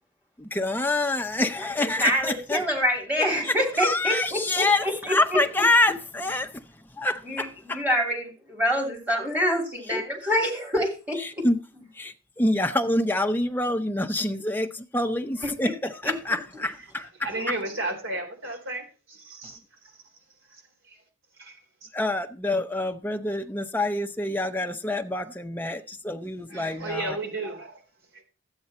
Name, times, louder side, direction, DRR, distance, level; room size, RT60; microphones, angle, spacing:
voice 1, 0.4-2.7 3.4-6.7 7.0-7.8 9.9-10.0 11.2-11.6 12.0-17.3 21.9-27.2, left 2 dB, 10° left, 0.7 m, -26 dB
voice 2, 1.8-5.1 7.2-11.2 15.6-15.7 16.0-16.1, equal, 5° right, 3.0 m, -26 dB
voice 3, 17.0-19.6 21.4-21.9 26.5-27.8 28.1-28.2, right 2 dB, 55° right, 3.4 m, -33 dB
12.5 x 8.9 x 4.2 m
head